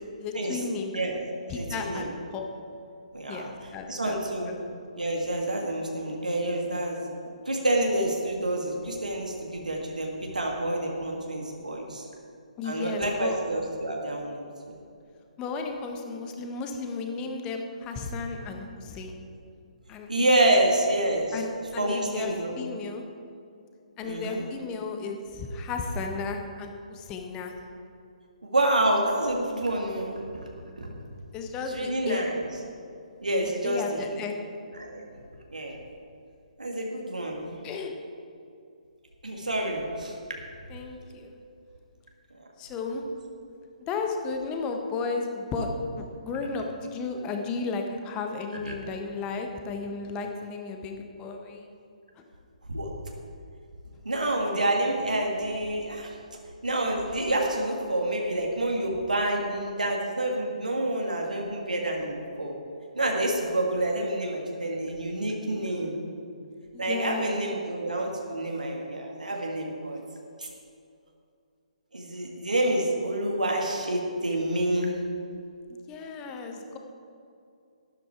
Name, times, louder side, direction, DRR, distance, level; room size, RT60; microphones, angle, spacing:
voice 1, 0.0-0.9 1.5-2.5 3.3-4.2 4.4-4.5 12.6-13.3 15.4-19.2 19.9-20.3 21.3-23.0 24.0-27.5 31.3-32.2 33.4-34.5 37.6-37.9 40.7-41.3 42.6-43.0 43.9-45.7 46.0-51.7 66.7-67.3 75.7-76.8, left 4 dB, 20° left, 4 dB, 1.2 m, -34 dB
voice 2, 0.9-2.1 3.1-3.5 3.9-4.5 5.0-7.2 7.5-12.1 12.6-14.8 20.1-21.3 21.8-22.5 24.0-24.4 28.4-30.2 30.8-30.9 31.7-32.3 33.2-33.8 34.1-34.2 34.8-35.0 35.5-35.8 36.6-37.5 39.2-40.1 48.6-48.7 52.7-52.9 54.1-56.1 56.6-62.5 63.0-65.9 66.8-70.0 70.4-70.5 71.9-74.9, right 1 dB, 75° right, 0 dB, 1.9 m, -28 dB
12.0 x 11.0 x 4.7 m, 2.5 s
figure-of-eight pair, 135°, 4 cm